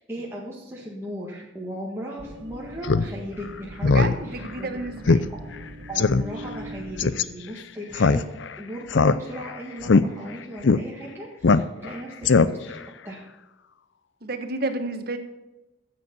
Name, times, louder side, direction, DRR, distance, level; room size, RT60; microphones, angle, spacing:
voice 1, 0.0-4.8 5.3-5.4 5.9-8.2 8.6-12.8 13.0-13.2, equal, 10° right, -4 dB, 1.7 m, -37 dB
sound 1, 2.2-7.2, right 1 dB, 80° right, 1.8 m, -41 dB
Speech synthesizer, 2.8-3.1 3.4-3.5 3.8-4.1 4.5-4.6 5.1-5.2 5.5-5.6 6.0-6.2 7.0-7.2 7.9-8.5 8.9-9.5 9.8-10.0 10.6-10.8 11.4-11.9 12.2-12.8, left 4 dB, 70° left, 0.5 m, -19 dB
voice 2, 3.8-5.3 10.1-10.2 14.2-15.2, right 2 dB, 50° right, 8 dB, 1.3 m, -31 dB
14.0 x 8.1 x 6.9 m, 1.0 s
head